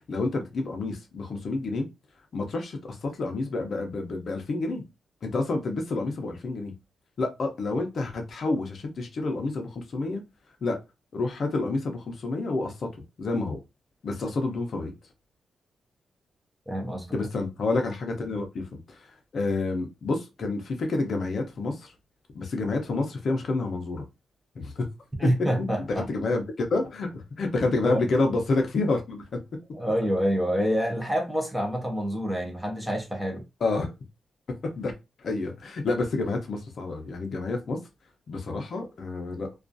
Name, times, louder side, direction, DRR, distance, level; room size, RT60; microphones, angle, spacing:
voice 1, 0.1-1.9 2.3-4.8 5.2-6.7 7.2-10.2 10.6-10.8 11.1-13.6 14.0-14.9 17.1-21.9 22.3-24.0 24.6-24.9 25.9-29.4 33.6-33.9 34.5-34.9 35.2-37.8 38.3-39.5, left 3 dB, 50° left, 0.5 m, -29 dB
voice 2, 16.7-17.1 25.2-26.1 27.8-28.0 29.7-33.4, equal, 5° right, 0.6 m, -27 dB
2.3 x 2.2 x 2.4 m
wide cardioid pair, 165°, 0 cm